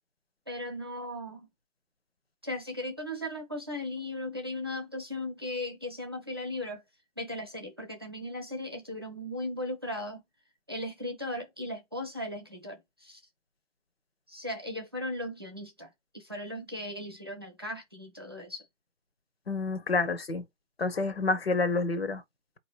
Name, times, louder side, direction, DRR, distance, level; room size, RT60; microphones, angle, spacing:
voice 1, 0.5-1.5 2.4-6.8 7.2-10.2 10.7-13.2 14.3-18.7, left 1 dB, 20° right, 0.6 m, -37 dB
voice 2, 19.5-20.4 20.8-22.2, left 3 dB, 50° left, 0.9 m, -28 dB
4.0 x 2.9 x 4.2 m
figure-of-eight pair, 160°, 38 cm